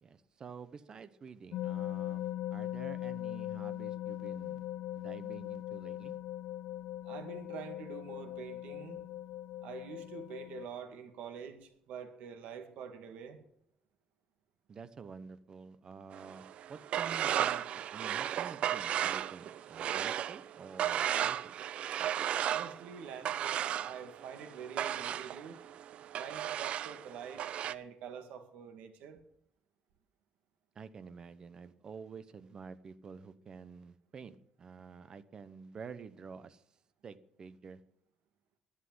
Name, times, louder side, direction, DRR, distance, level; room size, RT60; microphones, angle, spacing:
voice 1, 0.0-6.2 14.7-21.6 30.7-36.6 37.0-37.8, right 5 dB, 30° right, 13 dB, 0.9 m, -49 dB
sound 1, 1.5-10.7, left 13 dB, 70° left, 0.4 m, -40 dB
voice 2, 7.0-9.0 9.6-13.4 22.5-25.6 26.1-29.2, right 7 dB, 85° right, 7 dB, 2.1 m, -46 dB
sound 2, 16.1-27.7, right 10 dB, 55° right, 0.5 m, -35 dB
11.5 x 10.0 x 7.9 m, 0.71 s
cardioid pair, 165°, 2 cm